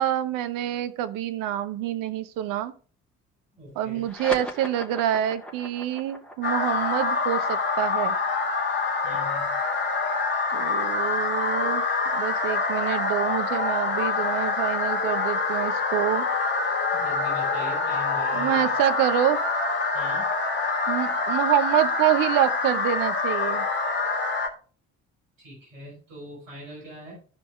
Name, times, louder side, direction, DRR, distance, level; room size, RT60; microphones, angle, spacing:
voice 1, 0.0-2.7 3.8-8.1 10.5-11.8 12.1-16.3 18.3-19.4 20.9-23.7, right 12 dB, 55° right, 12 dB, 0.8 m, -26 dB
voice 2, 3.5-4.1 9.0-9.5 16.9-18.6 19.9-20.3 25.4-27.1, left 1 dB, 75° right, -5 dB, 5.6 m, -42 dB
sound 1, 4.0-10.8, left 1 dB, ahead, 2.3 m, -40 dB
sound 2, 6.4-24.5, left 4 dB, 25° left, 2.5 m, -26 dB
14.0 x 4.9 x 3.7 m, 0.41 s
figure-of-eight pair, 50°, 39 cm